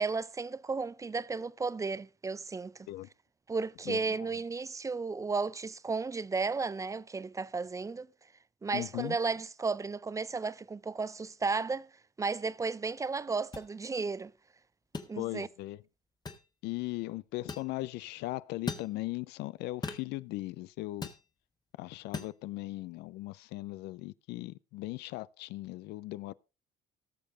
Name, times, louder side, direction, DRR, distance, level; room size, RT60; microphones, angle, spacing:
voice 1, 0.0-2.8 3.5-8.1 8.6-11.9 12.2-14.3 15.1-15.5, right 4 dB, 20° right, 0.4 m, -34 dB
voice 2, 3.9-4.3 8.7-9.2 15.2-15.8 16.6-21.1 21.8-26.3, left 19 dB, 85° left, 0.5 m, -38 dB
sound 1, 13.5-13.7 14.9-15.1 16.3-16.5 17.5-17.7 18.7-18.9 19.8-20.1 21.0-21.2 22.1-22.3, left 4 dB, 25° left, 1.4 m, -38 dB
17.5 x 6.6 x 3.8 m
cardioid pair, 110°, 17 cm